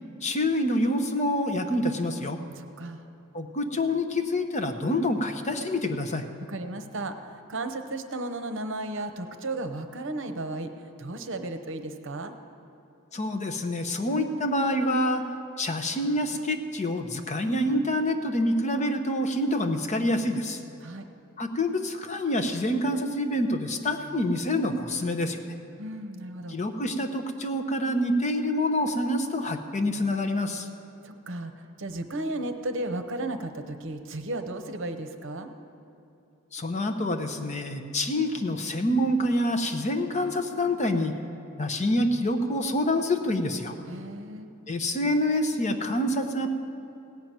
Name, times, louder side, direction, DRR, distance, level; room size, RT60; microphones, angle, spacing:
voice 1, 0.2-2.4 3.3-6.2 13.1-15.3 15.6-20.6 21.4-25.4 26.5-30.7 36.5-41.2 41.6-43.8 44.7-46.5, left 1 dB, 35° left, 6 dB, 0.8 m, -27 dB
voice 2, 2.5-3.0 6.5-10.7 11.0-12.3 20.8-21.1 25.8-26.6 31.0-31.5 31.8-35.5 43.9-44.5, right 2 dB, 60° right, 8 dB, 0.9 m, -34 dB
17.0 x 5.8 x 9.1 m, 2.8 s
head